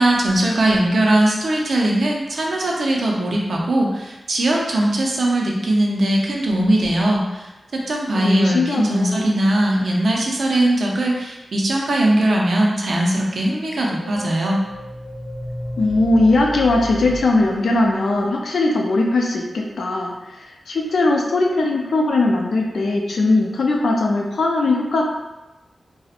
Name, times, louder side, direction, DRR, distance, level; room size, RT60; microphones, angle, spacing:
voice 1, 0.0-14.6, right 1 dB, 65° right, -1 dB, 0.4 m, -20 dB
voice 2, 8.1-9.3 15.8-25.1, left 2 dB, 75° left, 0 dB, 0.4 m, -19 dB
sound 1, 13.7-18.3, equal, 20° left, 1.0 m, -34 dB
2.7 x 2.0 x 2.4 m, 1.0 s
wide cardioid pair, 105°, 0 cm